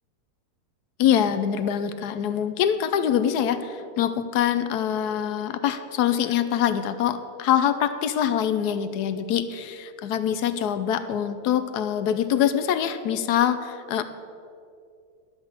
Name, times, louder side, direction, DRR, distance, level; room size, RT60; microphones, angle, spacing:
voice 1, 1.0-14.0, left 9 dB, 85° left, 11 dB, 1.2 m, -24 dB
11.5 x 6.4 x 7.4 m, 2.3 s
omnidirectional pair, 1.7 m